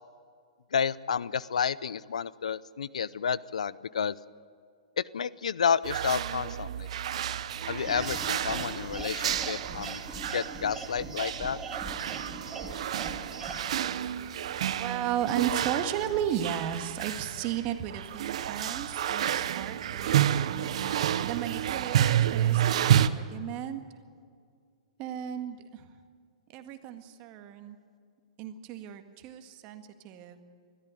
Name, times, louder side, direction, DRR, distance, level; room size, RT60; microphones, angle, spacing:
voice 1, 0.7-4.1 5.0-6.9 7.7-10.0 10.3-11.6, left 7 dB, 80° left, 20 dB, 0.5 m, -30 dB
sound 1, 5.8-23.1, right 10 dB, 65° right, 0.8 m, -30 dB
sound 2, 7.8-13.7, right 3 dB, 15° right, 2.6 m, -40 dB
voice 2, 14.8-20.6 20.9-23.8 25.0-25.9 26.5-27.8 28.4-30.4, right 10 dB, 40° right, 7 dB, 1.8 m, -35 dB
21.0 x 14.0 x 9.2 m, 2.1 s
hypercardioid pair, 115°, 4 cm